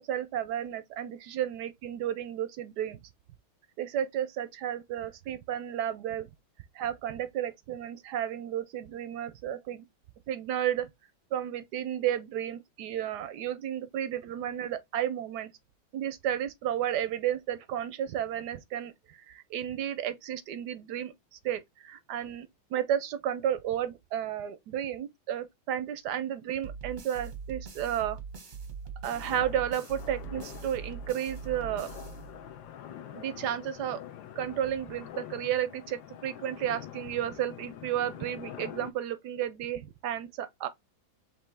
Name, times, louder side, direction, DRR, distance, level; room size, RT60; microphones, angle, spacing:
voice 1, 0.0-3.0 3.8-6.3 6.7-9.8 10.3-10.9 11.3-15.5 15.9-28.2 29.0-31.9 33.1-34.0 34.4-40.7, right 10 dB, 75° right, 1.0 m, -32 dB
sound 1, 26.6-32.7, right 5 dB, 45° right, 0.6 m, -42 dB
sound 2, 29.1-38.9, left 10 dB, 75° left, 1.4 m, -45 dB
5.2 x 2.9 x 3.3 m
omnidirectional pair, 2.2 m